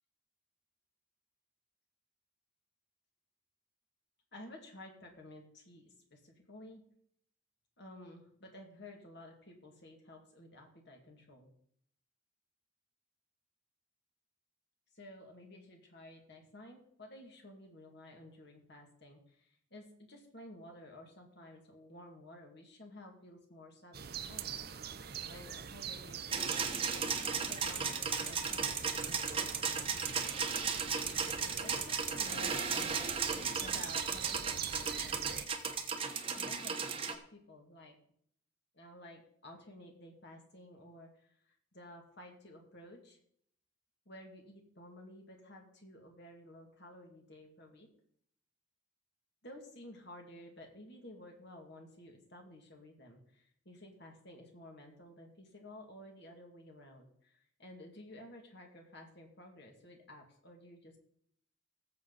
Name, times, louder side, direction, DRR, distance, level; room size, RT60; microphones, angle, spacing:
voice 1, 4.3-6.8 7.8-11.5 14.9-24.6 25.0-27.1 27.5-29.8 31.4-33.1 33.6-35.2 36.3-37.9 38.7-43.2 44.1-47.9 49.4-61.0, left 1 dB, 55° left, 2 dB, 2.3 m, -53 dB
sound 1, 23.9-35.4, right 7 dB, 50° right, 0.6 m, -45 dB
sound 2, 26.3-37.1, right 6 dB, 25° right, 1.1 m, -35 dB
19.0 x 7.5 x 4.1 m, 0.65 s
head